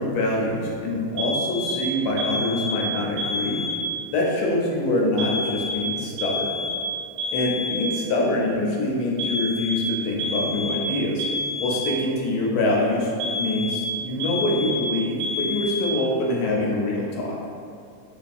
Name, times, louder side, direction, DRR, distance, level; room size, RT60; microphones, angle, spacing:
voice 1, 0.0-3.6 4.1-6.5 7.3-11.2 11.6-17.4, left 1 dB, 75° left, -2 dB, 1.1 m, -25 dB
sound 1, 1.2-1.8 2.2-2.8 3.2-3.8 5.2-5.9 6.2-6.8 7.2-7.8 9.2-9.8 10.2-10.9 11.2-11.9 13.2-13.9 14.2-14.9 15.2-15.9, left 2 dB, 55° right, 0.5 m, -28 dB
2.8 x 2.5 x 2.3 m, 2.4 s
omnidirectional pair, 1.7 m